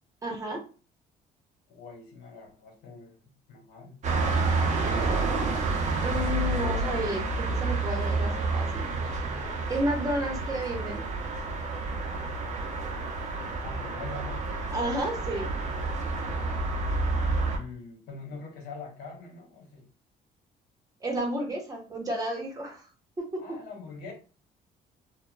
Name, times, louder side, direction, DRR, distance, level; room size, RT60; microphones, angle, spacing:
voice 1, 0.2-0.6 4.7-5.2 6.0-8.9 9.7-11.0 14.7-15.5 21.0-22.9, right 1 dB, 20° right, 1 dB, 0.9 m, -32 dB
voice 2, 1.7-3.2 3.5-4.0 13.6-14.5 17.5-19.9 23.4-24.1, left 3 dB, 80° left, 1 dB, 1.1 m, -43 dB
sound 1, 4.0-17.6, right 3 dB, 45° right, 0.7 m, -29 dB
2.9 x 2.2 x 2.2 m, 0.36 s
cardioid pair, 110°, 17 cm